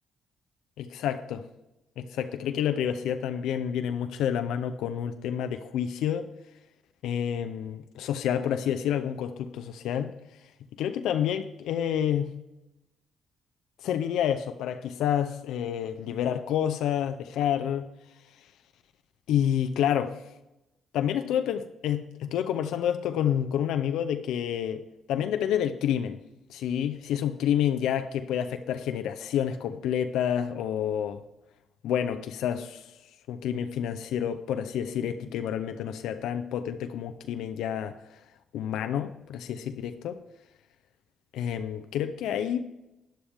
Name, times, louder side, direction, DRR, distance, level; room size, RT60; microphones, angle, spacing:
voice 1, 0.8-1.4 2.0-6.3 7.0-10.1 10.8-12.3 13.8-17.9 19.3-20.2 20.9-24.8 25.1-26.2 26.5-31.2 31.8-32.9 33.3-38.2 38.5-40.2 41.3-42.6, left 9 dB, 85° left, 0.6 m, -29 dB
11.5 x 10.5 x 3.5 m
cardioid pair, 75°, 0 cm